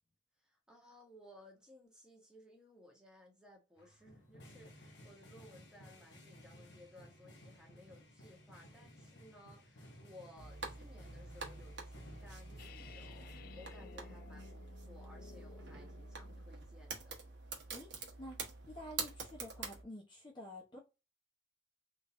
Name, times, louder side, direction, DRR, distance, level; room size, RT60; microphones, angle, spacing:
voice 1, 0.4-17.2, left 1 dB, 5° right, 1.3 m, -59 dB
sound 1, 3.8-13.8, equal, 80° left, 1.1 m, -57 dB
sound 2, 10.4-19.8, right 4 dB, 85° right, 1.1 m, -47 dB
sound 3, 12.6-16.6, left 7 dB, 55° left, 0.3 m, -56 dB
voice 2, 17.7-18.4 18.7-20.8, left 1 dB, 25° left, 0.9 m, -49 dB
3.8 x 3.1 x 2.6 m
head